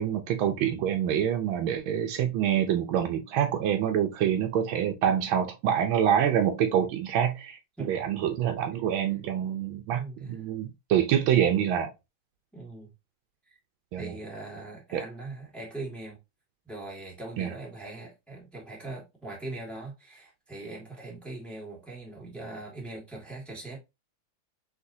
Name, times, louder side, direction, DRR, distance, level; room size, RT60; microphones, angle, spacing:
voice 1, 0.0-11.9 13.9-14.1 14.9-15.0 17.4-17.5, right 9 dB, 75° right, 1.4 m, -26 dB
voice 2, 9.9-10.3 12.5-12.9 13.4-13.6 14.0-16.2 16.6-23.8, right 2 dB, ahead, 1.6 m, -41 dB
5.1 x 3.3 x 2.7 m
omnidirectional pair, 2.3 m